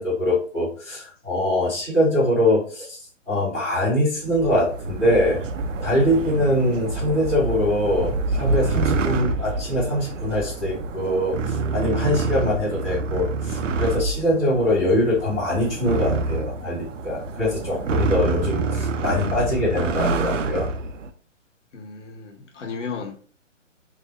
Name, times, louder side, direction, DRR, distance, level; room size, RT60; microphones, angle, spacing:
voice 1, 0.0-3.0 3.3-5.4 5.8-20.7, left 1 dB, ahead, 0.4 m, -23 dB
sound 1, 4.2-21.1, right 3 dB, 75° right, 0.7 m, -27 dB
voice 2, 21.7-23.2, left 5 dB, 70° left, 1.0 m, -34 dB
3.3 x 2.1 x 3.9 m
hypercardioid pair, 150°, 38 cm